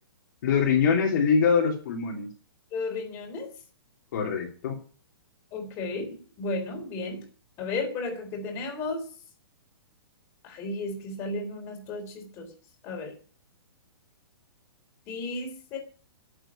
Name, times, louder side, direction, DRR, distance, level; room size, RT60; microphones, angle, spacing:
voice 1, 0.4-2.3 4.1-4.8, left 6 dB, 45° left, -1 dB, 2.8 m, -23 dB
voice 2, 2.7-3.5 5.5-7.2 7.6-9.0 10.4-12.5 12.8-13.1 15.1-15.8, left 3 dB, 20° left, 1 dB, 3.8 m, -33 dB
11.5 x 7.9 x 8.8 m, 0.41 s
hypercardioid pair, 175°, 13 cm